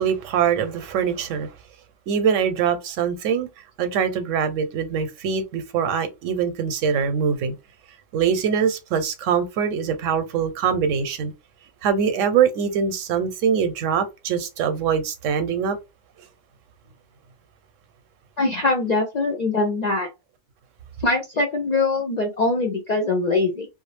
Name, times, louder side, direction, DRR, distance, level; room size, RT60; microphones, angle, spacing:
voice 1, 0.0-1.5 2.1-3.5 3.8-7.5 8.1-11.3 11.8-15.8, right 7 dB, 85° right, 0.9 m, -23 dB
voice 2, 18.4-20.1 21.0-23.7, left 3 dB, 65° left, 0.4 m, -22 dB
2.3 x 2.0 x 3.1 m
omnidirectional pair, 1.3 m